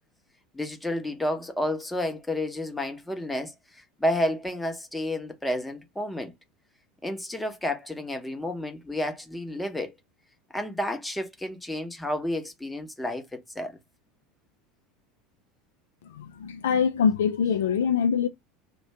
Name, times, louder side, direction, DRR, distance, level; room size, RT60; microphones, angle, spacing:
voice 1, 0.5-6.3 7.0-9.9 10.5-13.8, left 1 dB, 5° left, 0.7 m, -31 dB
voice 2, 16.0-18.3, left 7 dB, 65° left, 0.3 m, -24 dB
2.5 x 2.2 x 3.1 m
figure-of-eight pair, 75°, 0 cm